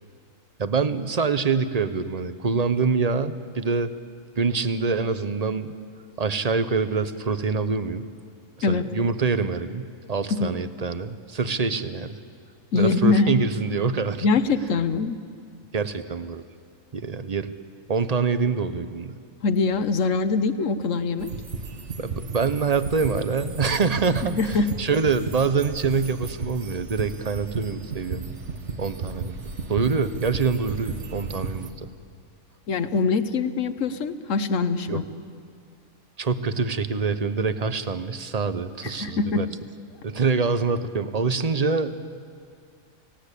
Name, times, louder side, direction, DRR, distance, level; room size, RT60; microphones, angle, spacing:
voice 1, 0.6-3.9 4.4-5.7 6.2-8.0 8.7-12.2 12.7-14.2 15.7-16.5 16.9-17.5 17.9-19.2 22.0-28.4 28.8-29.4 29.7-31.9 34.9-35.0 36.2-39.5 40.0-41.9, right 4 dB, 35° right, 11 dB, 0.8 m, -25 dB
voice 2, 12.7-13.3 14.2-15.2 19.4-21.3 24.4-24.7 32.7-35.0 38.8-39.4, left 4 dB, 65° left, 11 dB, 1.4 m, -23 dB
sound 1, 21.2-31.7, right 4 dB, 55° right, 1.7 m, -34 dB
29.0 x 17.5 x 8.3 m, 2.2 s
omnidirectional pair, 1.4 m